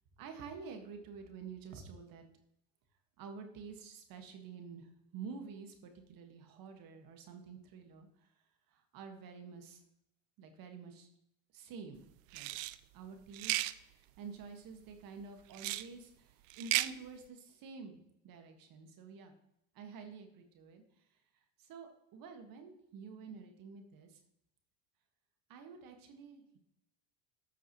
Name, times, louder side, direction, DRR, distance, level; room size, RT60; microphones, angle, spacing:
voice 1, 0.2-2.2 3.2-8.3 8.7-9.8 10.4-11.1 11.5-12.0 12.3-12.5 12.9-19.3 19.7-21.2 21.6-24.2 25.5-26.6, right 5 dB, 55° right, 5 dB, 1.9 m, -49 dB
sound 1, 12.3-12.7 13.3-13.7 15.5-15.9 16.5-16.9, right 18 dB, 70° right, 0.5 m, -34 dB
13.0 x 5.9 x 3.2 m, 0.79 s
supercardioid pair, 90°, 40 cm